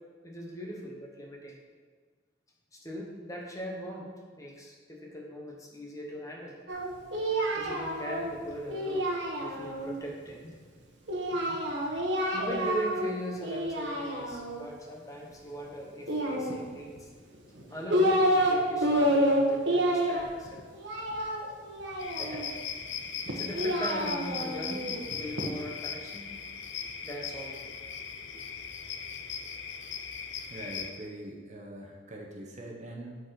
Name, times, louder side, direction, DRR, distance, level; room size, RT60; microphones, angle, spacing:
voice 1, 0.2-1.5 2.7-6.6 7.6-9.1 9.4-10.5 11.5-11.6 12.3-17.1 17.7-20.6 22.2-22.5 23.3-26.3 27.0-27.7 28.3-28.4, equal, 20° left, -1 dB, 1.2 m, -40 dB
Singing, 6.7-9.9 11.1-13.1 13.4-14.6 16.0-17.0 17.6-18.6 18.8-22.5 23.3-25.5, equal, 75° right, 1.2 m, -29 dB
sound 1, 22.0-30.9, left 7 dB, 80° left, 0.7 m, -39 dB
voice 2, 30.5-33.2, right 1 dB, 40° right, 1 dB, 1.0 m, -43 dB
8.3 x 4.6 x 5.9 m, 1.5 s
head